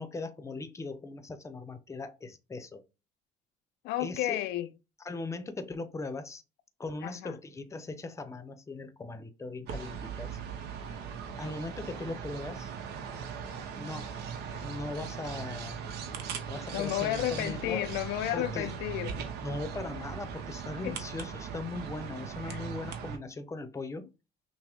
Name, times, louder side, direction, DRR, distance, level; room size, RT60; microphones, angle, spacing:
voice 1, 0.0-2.8 4.0-4.4 5.0-6.4 6.8-10.4 11.4-12.7 13.8-14.1 14.6-15.8 16.5-17.9 18.3-18.7 19.4-24.1, left 3 dB, 15° left, 0.7 m, -39 dB
voice 2, 3.8-4.7 7.0-7.3 16.7-19.4 20.8-21.0 22.4-22.6, left 14 dB, 85° left, 0.4 m, -32 dB
sound 1, 9.7-23.2, right 7 dB, 80° right, 0.9 m, -39 dB
6.0 x 2.1 x 3.5 m
cardioid pair, 110°, 17 cm